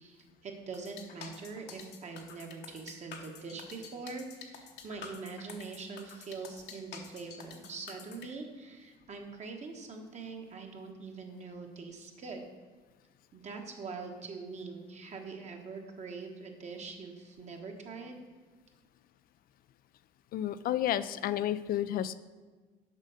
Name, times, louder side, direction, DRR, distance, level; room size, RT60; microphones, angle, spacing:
voice 1, 0.0-12.4 13.3-18.2, right 4 dB, 40° right, 3 dB, 1.4 m, -43 dB
sound 1, 0.7-8.3, left 7 dB, 75° left, 1.1 m, -48 dB
voice 2, 20.3-22.2, left 11 dB, 60° left, 13 dB, 0.4 m, -31 dB
7.4 x 5.2 x 6.5 m, 1.4 s
cardioid pair, 110°, 17 cm